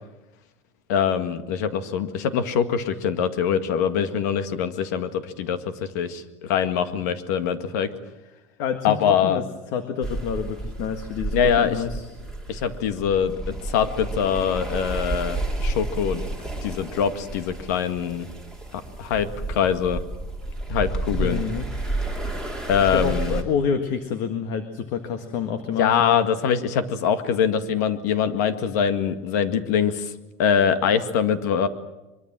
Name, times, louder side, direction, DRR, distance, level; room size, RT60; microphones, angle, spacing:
voice 1, 0.9-7.9 8.8-9.4 11.3-11.8 12.5-16.2 16.6-18.3 18.7-20.0 20.7-21.4 22.7-23.4 25.8-30.1 30.4-31.7, left 7 dB, 75° left, 10 dB, 2.0 m, -23 dB
voice 2, 8.6-9.4 9.7-12.1 21.2-21.7 22.8-26.1, left 6 dB, 45° left, 8 dB, 1.8 m, -28 dB
sound 1, 10.0-23.4, right 2 dB, 5° left, 2.8 m, -31 dB
23.5 x 23.0 x 7.6 m, 1.0 s
cardioid pair, 175°, 9 cm